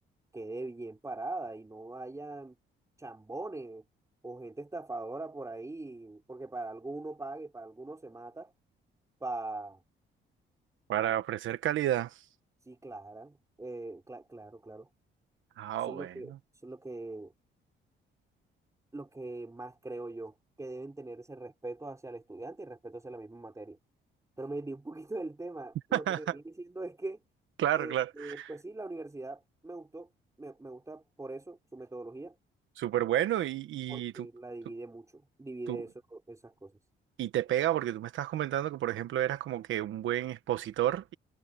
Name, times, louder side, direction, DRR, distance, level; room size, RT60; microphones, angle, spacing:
voice 1, 0.3-2.6 3.0-3.8 4.2-8.5 9.2-9.8 12.7-14.9 15.9-16.3 16.6-17.3 18.9-23.8 24.4-27.2 27.8-30.1 30.4-32.4 33.9-36.7, right 2 dB, 15° right, 4.3 m, -41 dB
voice 2, 10.9-12.2 15.6-16.1 25.9-26.4 27.6-28.5 32.8-34.3 35.7-35.8 37.2-41.1, right 12 dB, 75° right, 1.2 m, -31 dB
cardioid pair, 90°, 20 cm